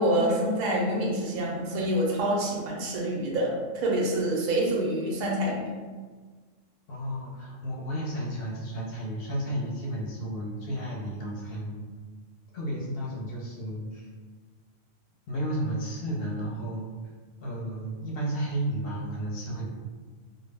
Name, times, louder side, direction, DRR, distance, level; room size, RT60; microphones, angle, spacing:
voice 1, 0.0-5.7, right 1 dB, 55° right, -3 dB, 0.6 m, -26 dB
voice 2, 6.9-11.9 12.5-14.1 15.3-16.9 17.4-19.7, right 1 dB, 55° left, -3 dB, 0.8 m, -32 dB
2.2 x 2.1 x 3.3 m, 1.4 s
omnidirectional pair, 1.3 m